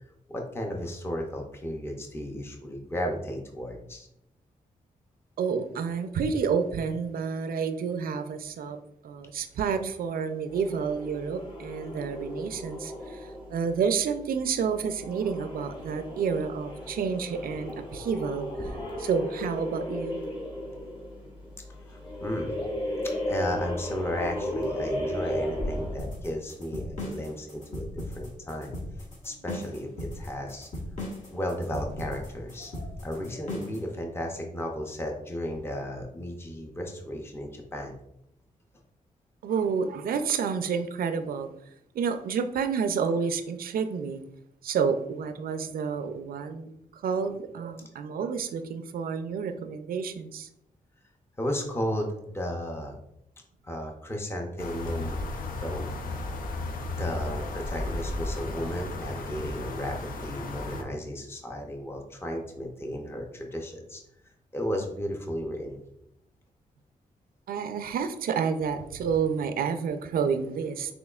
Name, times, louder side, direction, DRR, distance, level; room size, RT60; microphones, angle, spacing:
voice 1, 0.3-4.1 21.9-22.5 23.3-28.8 29.2-30.7 31.3-38.0 51.4-52.9 53.6-55.2 55.6-55.9 57.0-64.0 64.5-65.8, equal, 15° left, 2 dB, 0.6 m, -34 dB
voice 2, 5.4-8.8 9.0-20.2 39.4-41.5 41.9-44.2 44.6-50.5 67.5-70.9, right 6 dB, 85° right, 9 dB, 0.4 m, -29 dB
sound 1, 10.5-26.2, left 1 dB, 35° left, 1.5 m, -35 dB
sound 2, 26.0-33.9, left 1 dB, 55° left, 1.3 m, -37 dB
sound 3, 54.6-60.8, left 2 dB, 70° left, 0.6 m, -34 dB
6.1 x 2.9 x 2.4 m, 0.80 s
wide cardioid pair, 115°, 15 cm